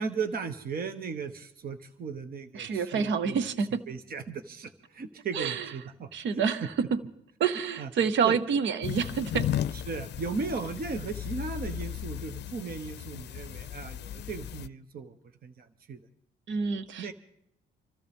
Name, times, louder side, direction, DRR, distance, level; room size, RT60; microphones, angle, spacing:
voice 1, 0.0-3.4 3.9-6.4 7.8-7.9 8.2-8.3 9.7-15.1 15.4-16.0 17.0-17.1, right 5 dB, 50° right, 8 dB, 1.1 m, -36 dB
voice 2, 2.5-3.8 5.3-5.7 6.1-7.0 7.4-9.5 16.5-17.1, right 6 dB, 70° right, 13 dB, 0.9 m, -28 dB
sound 1, 8.8-14.7, left 11 dB, 60° left, 0.5 m, -35 dB
26.0 x 13.5 x 3.6 m, 0.74 s
cardioid pair, 90°, 20 cm